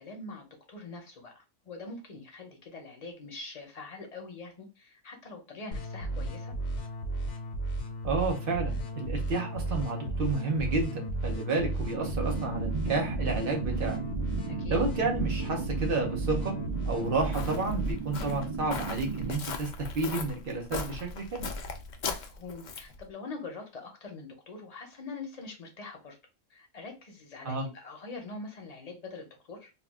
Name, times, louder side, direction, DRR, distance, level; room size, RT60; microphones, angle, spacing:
voice 1, 0.0-6.5 14.5-14.9 22.1-26.2 26.5-29.7, left 3 dB, 40° left, 2 dB, 0.6 m, -44 dB
sound 1, 5.7-17.9, right 1 dB, 70° left, 1.0 m, -34 dB
voice 2, 8.0-14.0 14.7-16.5 16.9-21.5 27.4-27.7, right 3 dB, 50° right, 2 dB, 0.8 m, -31 dB
sound 2, 11.9-19.3, right 5 dB, 70° right, 0.3 m, -36 dB
Walk footsteps, 16.7-23.0, left 4 dB, 90° left, 0.4 m, -39 dB
2.4 x 2.3 x 3.4 m, 0.29 s
omnidirectional pair, 1.3 m